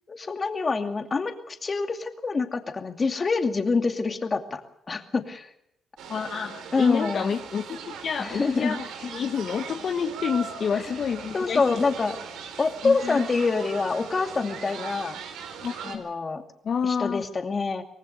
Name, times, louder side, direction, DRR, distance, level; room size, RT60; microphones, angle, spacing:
voice 1, 0.1-4.6 4.9-5.5 6.7-7.3 8.2-8.8 11.3-12.2 12.6-15.2 15.8-16.4 16.8-17.8, left 4 dB, 35° left, 6 dB, 2.5 m, -26 dB
sound 1, 6.0-16.0, right 6 dB, 85° right, 3.7 m, -39 dB
voice 2, 6.1-11.8 12.8-13.2 15.6-16.0 16.6-17.2, left 6 dB, 55° left, 6 dB, 1.3 m, -29 dB
24.5 x 18.5 x 6.7 m, 0.77 s
cardioid pair, 90°, 0 cm